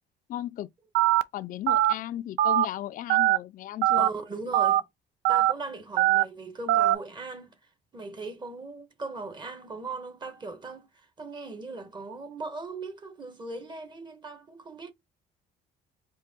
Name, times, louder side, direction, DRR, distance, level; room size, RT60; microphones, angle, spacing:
voice 1, 0.3-0.7 1.3-4.1, left 13 dB, 55° left, 0.4 m, -35 dB
Telephone, 0.9-1.2 1.7-1.9 2.4-2.6 3.1-3.4 3.8-4.1 4.5-4.8 5.2-5.5 6.0-6.2 6.7-6.9, right 14 dB, 85° right, 0.5 m, -21 dB
voice 2, 3.9-4.8 5.3-7.5 7.9-14.9, right 3 dB, 25° right, 1.5 m, -38 dB
4.8 x 2.7 x 3.7 m
cardioid pair, 110°, 17 cm